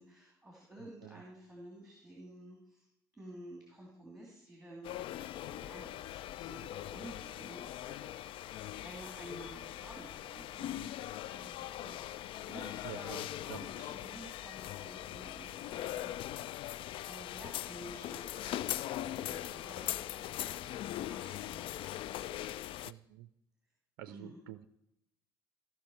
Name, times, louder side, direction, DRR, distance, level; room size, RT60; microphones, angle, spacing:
voice 1, 0.0-2.9 3.1-16.6 17.0-22.8 24.1-24.4, right 1 dB, 5° right, -3 dB, 3.0 m, -52 dB
voice 2, 0.8-1.2 10.8-10.9 12.8-13.6 22.8-23.3 24.0-24.7, right 14 dB, 65° right, 12 dB, 0.5 m, -49 dB
sound 1, 4.8-22.9, left 13 dB, 45° left, 0.3 m, -41 dB
14.5 x 5.8 x 4.6 m, 0.81 s
figure-of-eight pair, 55°, 12 cm